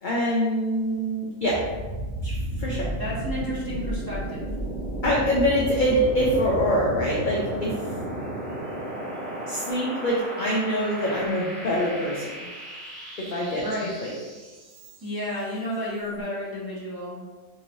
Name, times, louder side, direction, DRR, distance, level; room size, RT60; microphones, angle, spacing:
voice 1, 0.0-1.7 2.2-2.9 5.0-7.8 9.5-12.5 13.2-14.1, equal, 70° left, -4 dB, 0.4 m, -25 dB
sound 1, 1.4-15.3, right 1 dB, 60° right, 0.8 m, -33 dB
voice 2, 3.0-4.5 13.5-14.0 15.0-17.2, equal, 20° right, -8 dB, 0.8 m, -32 dB
3.8 x 3.0 x 2.6 m, 1.3 s
omnidirectional pair, 1.5 m